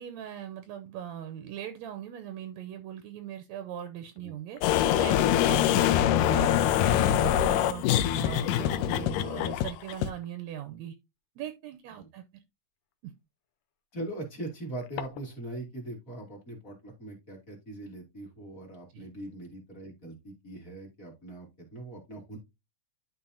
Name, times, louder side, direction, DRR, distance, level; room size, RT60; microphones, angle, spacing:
voice 1, 0.0-4.6 4.9-7.8 8.1-10.9 11.4-12.2 13.0-13.1 18.9-19.1, right 10 dB, 75° right, 1.8 m, -40 dB
sound 1, 1.2-1.3 3.9-4.0 4.2-4.3 4.5-5.9 7.2-7.3 8.2-8.3 10.2-10.5 11.7-11.8 13.9-15.5, left 8 dB, 70° left, 1.7 m, -44 dB
sound 2, 4.6-10.1, left 11 dB, 85° left, 2.2 m, -24 dB
voice 2, 13.9-22.4, right 2 dB, 25° left, 2.6 m, -41 dB
11.5 x 4.0 x 2.7 m
omnidirectional pair, 3.6 m